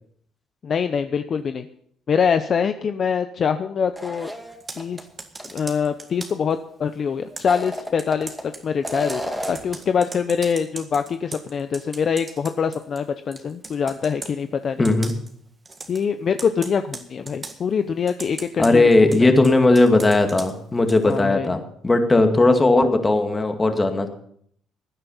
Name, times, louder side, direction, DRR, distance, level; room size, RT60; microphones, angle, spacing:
voice 1, 0.6-1.7 2.1-4.3 4.8-5.0 5.5-9.2 9.5-14.9 15.9-19.4 21.0-21.5, left 6 dB, 45° left, 9 dB, 0.7 m, -24 dB
sound 1, 3.9-5.0 5.4-5.5 7.3-8.4 8.8-9.7, equal, ahead, 2.0 m, -32 dB
Computer keyboard, 4.5-6.5 7.4-13.1 13.3-14.4 14.8-15.3 15.7-16.0 16.4-17.6 18.1-21.2, right 3 dB, 25° right, 1.7 m, -39 dB
voice 2, 14.8-15.1 18.6-24.1, left 2 dB, 20° left, 5 dB, 2.0 m, -17 dB
16.0 x 9.9 x 5.6 m, 0.65 s
cardioid pair, 100°, 0 cm